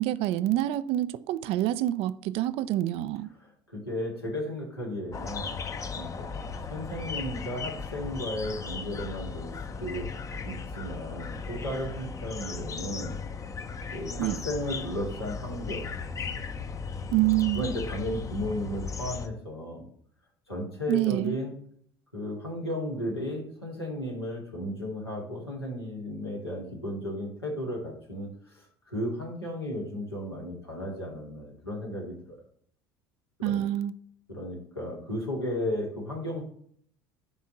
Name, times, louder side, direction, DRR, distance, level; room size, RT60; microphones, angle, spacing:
voice 1, 0.0-3.3 14.2-14.4 17.1-17.7 20.9-21.4 33.4-33.9, right 14 dB, 50° right, 0.5 m, -27 dB
voice 2, 3.3-10.1 10.4-13.2 13.9-15.9 17.5-19.9 20.5-21.5 22.1-32.4 33.4-33.6 34.3-36.4, left 1 dB, 85° left, 2.6 m, -34 dB
sound 1, 5.1-19.3, left 5 dB, 25° left, 0.8 m, -37 dB
10.0 x 3.7 x 7.2 m
figure-of-eight pair, 65°, 13 cm